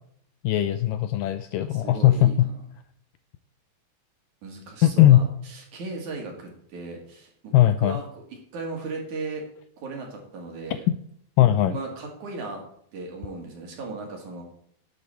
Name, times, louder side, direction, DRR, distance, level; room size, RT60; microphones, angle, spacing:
voice 1, 0.4-2.5 4.8-5.2 7.5-8.0 11.4-11.8, left 13 dB, 85° left, 11 dB, 2.0 m, -19 dB
voice 2, 1.7-2.5 4.4-8.2 8.5-9.4 9.8-10.9 11.7-12.6 12.9-14.4, right 3 dB, 55° right, 1 dB, 3.6 m, -36 dB
12.0 x 9.2 x 4.4 m, 0.66 s
omnidirectional pair, 4.3 m